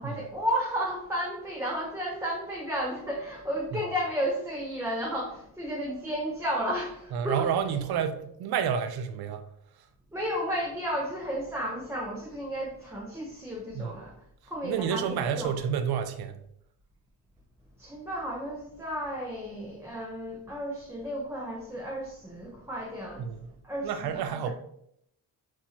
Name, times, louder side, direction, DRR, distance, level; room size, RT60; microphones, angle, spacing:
voice 1, 0.0-7.5 10.1-14.2 14.5-15.6 17.8-23.3 23.6-24.5, equal, 5° right, -3 dB, 0.9 m, -33 dB
voice 2, 7.1-9.4 13.7-13.9 14.6-16.4 23.2-23.4 23.8-24.5, right 8 dB, 75° right, 9 dB, 0.6 m, -29 dB
6.0 x 3.0 x 2.9 m, 0.72 s
cardioid pair, 95°, 38 cm